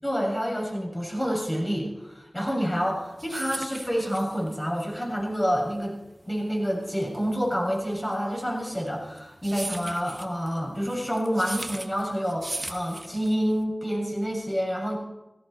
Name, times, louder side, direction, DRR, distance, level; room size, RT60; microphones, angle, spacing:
voice 1, 0.0-6.0 6.2-15.0, equal, 20° left, -1 dB, 6.9 m, -28 dB
sound 1, 2.8-13.6, right 2 dB, 40° right, 1.4 m, -39 dB
17.0 x 16.5 x 4.4 m, 1.0 s
wide cardioid pair, 45°, 0 cm